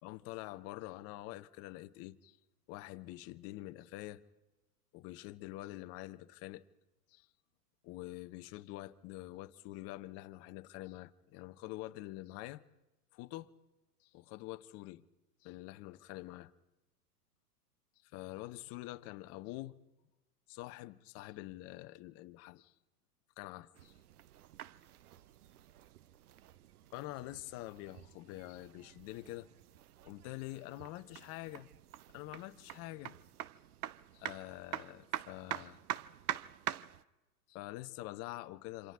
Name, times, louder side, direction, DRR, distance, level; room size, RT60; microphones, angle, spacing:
voice 1, 0.0-2.4 2.7-4.2 4.9-6.6 7.1-7.3 7.8-12.6 13.1-13.5 14.0-15.0 15.4-16.5 18.0-19.8 20.5-22.7 23.4-23.9 26.9-29.5 30.0-31.7 32.1-33.2 34.1-35.8 37.5-38.9, left 17 dB, 30° left, 0.8 m, -46 dB
sound 1, 23.7-37.0, right 12 dB, 70° right, 0.8 m, -46 dB
27.5 x 26.0 x 3.6 m
hypercardioid pair, 115°, 48 cm